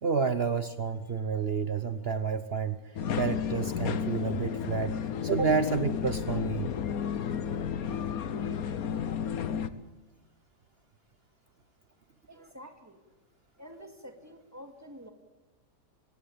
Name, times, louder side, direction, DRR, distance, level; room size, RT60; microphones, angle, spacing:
voice 1, 0.0-2.8 3.2-5.0 5.2-6.7, right 5 dB, 50° right, 12 dB, 0.8 m, -29 dB
sound 1, 3.0-9.7, left 8 dB, 60° left, 1.3 m, -32 dB
voice 2, 12.3-13.0 13.6-15.1, equal, 10° right, 5 dB, 2.4 m, -48 dB
24.0 x 16.5 x 8.8 m, 1.1 s
omnidirectional pair, 1.8 m